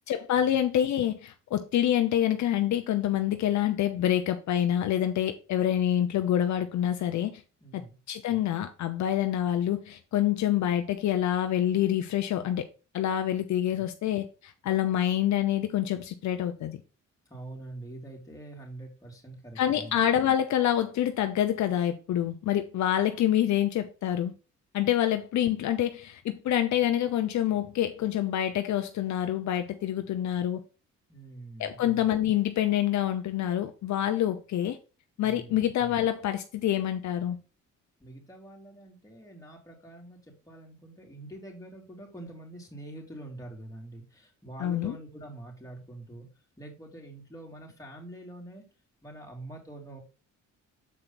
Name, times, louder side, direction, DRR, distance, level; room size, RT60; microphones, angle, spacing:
voice 1, 0.1-7.3 7.7-7.8 8.1-12.6 12.9-16.8 19.6-24.3 24.7-30.6 31.6-34.8 35.2-37.4 44.6-45.0, left 11 dB, 70° left, 0.8 m, -27 dB
voice 2, 7.6-7.9 17.3-20.0 31.1-31.9 35.2-35.6 38.0-40.2 40.4-46.3 46.6-48.6 49.0-50.0, right 1 dB, 10° left, 3.0 m, -45 dB
7.5 x 4.5 x 4.1 m
cardioid pair, 90°, 30 cm